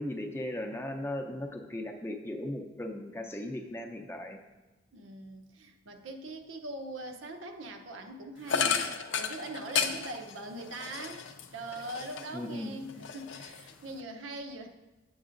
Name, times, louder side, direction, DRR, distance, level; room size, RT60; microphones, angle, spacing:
voice 1, 0.0-4.4 12.3-12.8, left 1 dB, 10° left, 3 dB, 0.5 m, -37 dB
voice 2, 4.9-11.2 11.5-14.7, right 2 dB, 85° right, 5 dB, 0.7 m, -42 dB
sound 1, 8.5-12.5 12.9-14.0, left 6 dB, 75° left, 0.5 m, -33 dB
9.9 x 7.0 x 2.5 m, 1.1 s
head